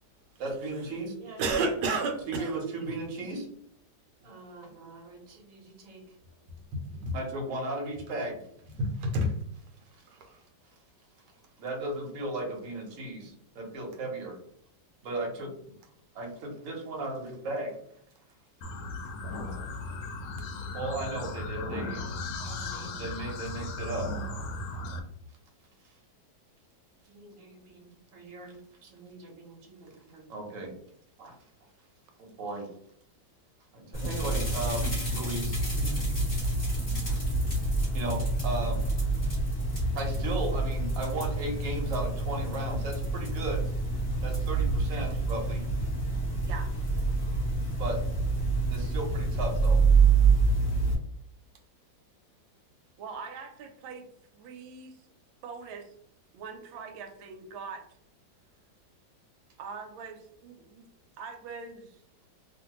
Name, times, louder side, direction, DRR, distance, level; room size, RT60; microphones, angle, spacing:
voice 1, 0.4-1.4 2.3-3.5 4.2-6.0 7.1-8.4 11.6-14.4 15.0-15.5 16.1-17.8 19.2-19.9 20.2-20.5 20.7-22.1 22.4-24.1 27.1-30.7 31.2-31.3 32.2-32.7 33.7-35.6 37.9-38.8 39.9-43.7 44.2-45.7 47.2-47.3 47.8-48.0 48.7-49.8, right 2 dB, 55° right, 1.1 m, -36 dB
voice 2, 1.4-2.5 6.7-7.1 8.8-9.4 10.1-10.4, right 1 dB, 70° right, 1.2 m, -29 dB
sound 1, 18.6-25.0, left 2 dB, 75° left, 1.2 m, -36 dB
sound 2, 33.9-50.9, right 3 dB, 30° left, 1.2 m, -27 dB
voice 3, 44.9-45.2 46.4-46.7 53.0-54.1 54.3-55.0 55.4-55.9 56.3-57.8 59.6-60.9 61.2-62.0, right 5 dB, 90° right, 1.4 m, -43 dB
3.0 x 2.5 x 2.9 m
omnidirectional pair, 2.1 m